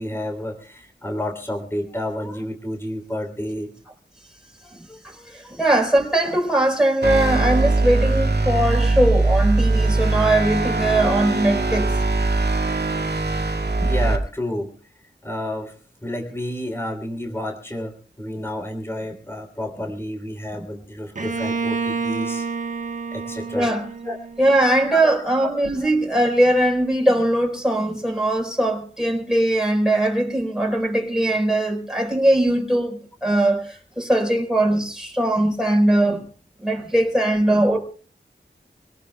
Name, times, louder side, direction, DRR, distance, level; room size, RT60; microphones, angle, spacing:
voice 1, 0.0-3.7 4.9-5.0 5.4-5.6 13.8-14.7 15.2-15.7 16.0-22.5 23.1-23.7 24.0-24.2 24.9-25.5 25.8-25.9, left 1 dB, 15° left, 3.1 m, -30 dB
voice 2, 5.0-11.9 23.5-23.8 24.4-36.2 36.6-37.8, right 1 dB, 5° right, 4.3 m, -20 dB
sound 1, 7.0-14.2, right 2 dB, 60° right, 2.1 m, -21 dB
Bowed string instrument, 21.2-24.9, right 5 dB, 40° right, 1.2 m, -29 dB
25.5 x 18.5 x 2.2 m
wide cardioid pair, 55°, 19 cm